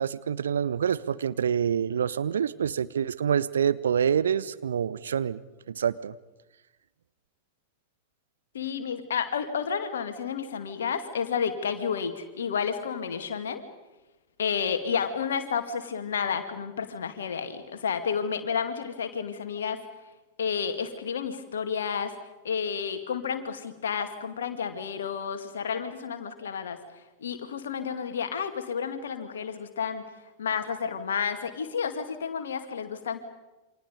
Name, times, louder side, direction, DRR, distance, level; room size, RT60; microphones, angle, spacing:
voice 1, 0.0-5.4 5.7-6.1, right 8 dB, 65° right, 16 dB, 0.7 m, -26 dB
voice 2, 8.5-13.6 14.4-19.8 20.4-22.1 22.4-26.8 27.2-30.0 30.4-33.2, left 6 dB, 65° left, 8 dB, 2.2 m, -31 dB
28.5 x 25.0 x 5.3 m, 1.1 s
figure-of-eight pair, 90°, 0 cm